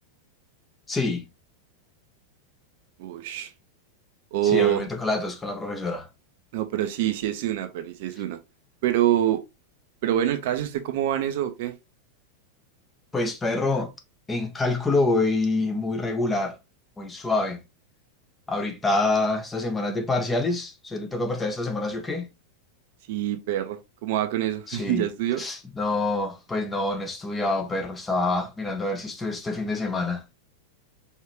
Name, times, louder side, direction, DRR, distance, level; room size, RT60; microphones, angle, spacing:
voice 1, 0.9-1.2 4.4-6.1 13.1-13.9 14.3-16.6 17.0-17.6 18.5-22.3 24.7-25.1 25.4-30.2, left 2 dB, 15° left, 0.9 m, -26 dB
voice 2, 3.0-3.5 4.3-4.8 6.5-8.4 8.8-9.4 10.0-11.7 23.1-25.4, right 11 dB, 50° right, 0.6 m, -25 dB
4.7 x 3.2 x 3.0 m
figure-of-eight pair, 90°, 0 cm